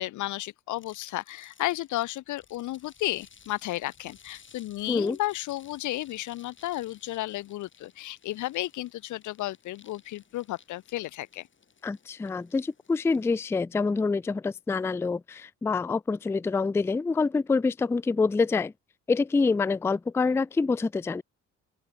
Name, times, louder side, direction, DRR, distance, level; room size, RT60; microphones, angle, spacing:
voice 1, 0.0-11.5, left 16 dB, 75° left, 0.7 m, -33 dB
sound 1, 0.8-13.5, left 6 dB, 40° left, 4.4 m, -58 dB
voice 2, 11.8-18.7 19.1-21.2, left 4 dB, 10° left, 0.3 m, -26 dB
open air
cardioid pair, 90°, 30 cm